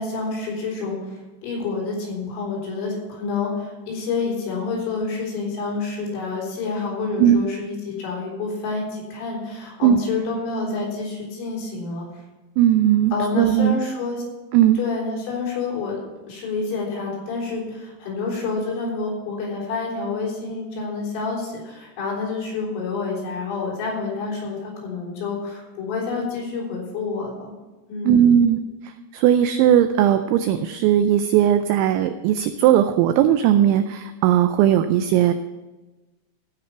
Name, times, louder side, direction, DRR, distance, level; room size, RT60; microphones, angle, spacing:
voice 1, 0.0-12.1 13.1-14.2 14.7-16.0 16.3-27.5 27.9-28.4, left 4 dB, 75° left, -3 dB, 6.2 m, -28 dB
voice 2, 12.6-13.8 14.5-14.8 28.1-28.6 29.1-35.3, right 10 dB, 90° right, 9 dB, 2.6 m, -17 dB
15.5 x 5.2 x 6.8 m, 1.2 s
omnidirectional pair, 5.8 m